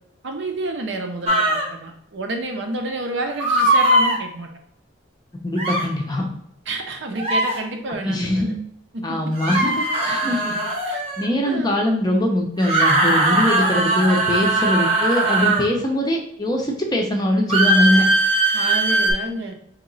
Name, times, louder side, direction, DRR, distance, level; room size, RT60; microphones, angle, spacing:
voice 1, 0.2-4.5 6.7-8.4 8.9-9.3 10.2-11.0 11.4-11.9 18.5-19.5, right 2 dB, 60° right, 3 dB, 0.6 m, -30 dB
sound 1, 1.3-1.7 3.4-4.2 5.6-5.9 7.2-7.6 9.4-11.2 12.6-15.7 17.5-19.1, right 1 dB, 30° right, 0.8 m, -19 dB
voice 2, 5.4-6.3 7.9-8.5 9.0-10.4 11.2-18.0, left 1 dB, 20° left, 1 dB, 0.6 m, -22 dB
3.0 x 2.9 x 3.9 m, 0.74 s
head